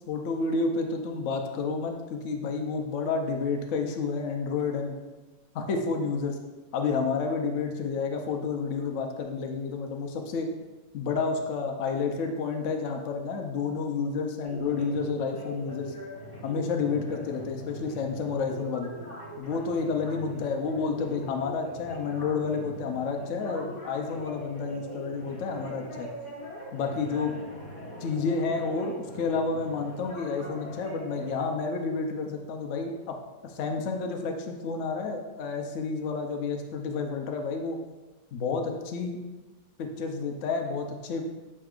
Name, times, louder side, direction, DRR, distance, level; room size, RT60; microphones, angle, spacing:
voice 1, 0.1-5.0 5.5-6.4 6.7-10.5 10.9-15.9 16.4-18.9 19.4-26.1 26.7-27.4 28.0-33.2 33.4-37.8 38.3-39.2 39.8-41.2, left 4 dB, 60° left, 3 dB, 0.8 m, -30 dB
sound 1, 14.4-31.4, equal, 20° left, 1.1 m, -41 dB
8.7 x 4.6 x 2.5 m, 1.2 s
omnidirectional pair, 2.1 m